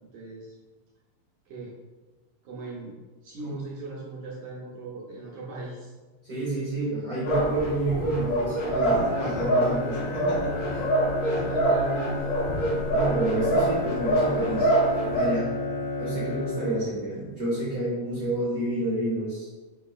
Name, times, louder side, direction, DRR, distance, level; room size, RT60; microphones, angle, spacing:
voice 1, 0.1-0.6 1.5-1.7 2.4-3.0 3.2-5.9 11.2-12.3, right 2 dB, 75° right, -5 dB, 1.9 m, -38 dB
voice 2, 6.2-10.8 12.9-14.7 15.1-15.5 16.0-19.5, right 2 dB, 55° right, -9 dB, 0.9 m, -29 dB
sound 1, 7.3-15.3, right 1 dB, 55° left, 2.4 m, -25 dB
Bowed string instrument, 8.9-17.2, left 3 dB, 80° left, 2.5 m, -32 dB
6.4 x 3.2 x 2.3 m, 1.2 s
omnidirectional pair, 4.0 m